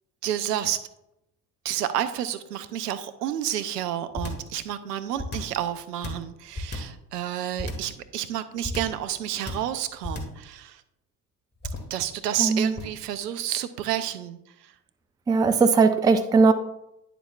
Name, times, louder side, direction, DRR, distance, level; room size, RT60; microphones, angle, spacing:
voice 1, 0.2-0.8 1.6-10.8 11.9-14.7, right 11 dB, 75° right, 12 dB, 0.7 m, -30 dB
sound 1, 4.1-4.5 5.2-5.6 6.0-7.0 7.6-8.0 8.6-9.0 9.5-9.8 10.0-10.4 11.6-12.0 12.8-13.0, left 2 dB, 20° left, 1.6 m, -33 dB
voice 2, 12.4-12.7 15.3-16.5, right 4 dB, 10° right, 9 dB, 0.4 m, -19 dB
10.0 x 6.9 x 2.4 m, 0.85 s
figure-of-eight pair, 60°, 49 cm